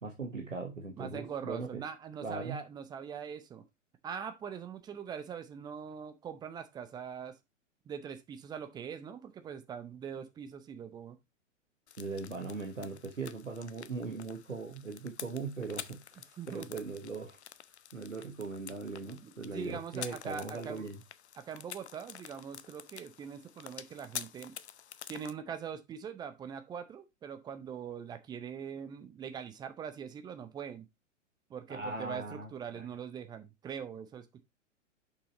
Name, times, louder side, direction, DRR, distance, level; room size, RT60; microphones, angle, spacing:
voice 1, 0.0-1.8 2.2-2.6 12.0-17.4 17.9-21.0 31.7-32.9, right 4 dB, 80° right, 1.5 m, -40 dB
voice 2, 1.0-3.6 4.0-7.3 7.9-11.2 16.4-16.7 19.2-20.9 21.4-24.5 25.1-30.9 31.5-34.4, right 7 dB, 10° right, 0.6 m, -42 dB
sound 1, 11.9-25.3, left 9 dB, 60° left, 0.7 m, -48 dB
6.7 x 5.7 x 4.0 m
figure-of-eight pair, 105°, 38 cm